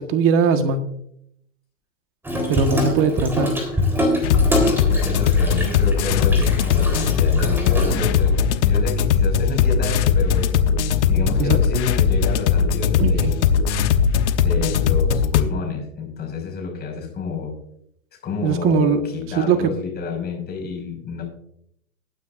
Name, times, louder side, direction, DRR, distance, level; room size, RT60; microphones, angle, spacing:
voice 1, 0.1-0.9 2.5-3.5 11.4-11.6 13.0-13.3 18.4-19.0 19.3-19.7, right 6 dB, 30° right, 8 dB, 1.5 m, -20 dB
Water tap faucet / Sink (filling or washing), 2.2-8.4, equal, 5° right, 3.7 m, -25 dB
voice 2, 2.6-2.9 4.2-10.5 11.1-13.6 14.4-17.5 18.2-21.2, left 5 dB, 25° left, 0 dB, 5.6 m, -30 dB
sound 1, 4.2-15.4, left 6 dB, 55° left, 1.1 m, -19 dB
19.5 x 9.5 x 2.6 m, 0.72 s
hypercardioid pair, 120°, 40 cm